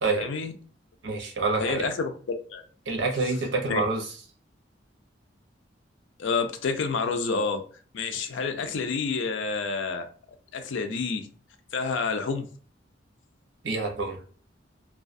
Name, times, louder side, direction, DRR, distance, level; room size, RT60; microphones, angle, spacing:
voice 1, 0.1-0.5 1.6-2.1 2.5-2.6 3.7-3.8 6.2-7.6 7.9-10.1 10.5-11.3 11.7-12.5, left 4 dB, 85° left, 7 dB, 0.4 m, -28 dB
voice 2, 1.0-1.9 2.9-4.1 13.6-14.2, right 3 dB, 80° right, 1 dB, 0.7 m, -27 dB
2.3 x 2.2 x 2.5 m, 0.43 s
head